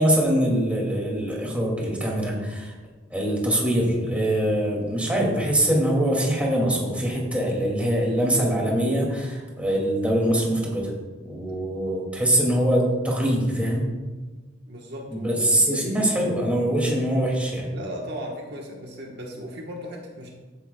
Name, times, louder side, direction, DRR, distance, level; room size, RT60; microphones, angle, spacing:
voice 1, 0.0-2.7 3.1-10.9 11.2-13.8 15.1-17.7, right 1 dB, 5° right, -2 dB, 2.4 m, -23 dB
voice 2, 14.7-16.1 17.7-20.3, equal, 55° right, -1 dB, 1.3 m, -37 dB
13.5 x 9.9 x 2.3 m, 1.3 s
head